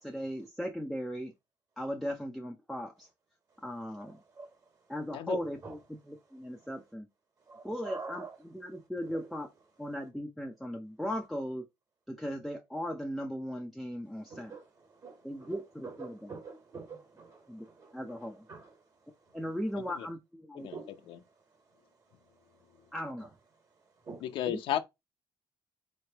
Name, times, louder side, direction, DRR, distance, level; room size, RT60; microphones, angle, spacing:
voice 1, 0.0-1.3 1.8-3.1 3.6-4.2 4.9-5.8 6.1-7.1 7.6-9.5 9.8-11.6 12.1-14.5 15.2-16.3 17.5-17.7 17.9-18.4 19.3-20.7 22.9-23.3 24.5-24.6, equal, ahead, 0.5 m, -37 dB
voice 2, 4.0-4.5 5.6-5.8 6.6-6.7 7.5-8.4 9.0-9.3 14.2-18.8 19.3-19.4 19.7-19.8 20.7-21.0 23.2-23.3 24.0-24.2, right 4 dB, 40° right, 1.5 m, -47 dB
voice 3, 24.2-24.8, left 11 dB, 75° left, 0.7 m, -33 dB
4.3 x 3.2 x 2.8 m
cardioid pair, 150°, 9 cm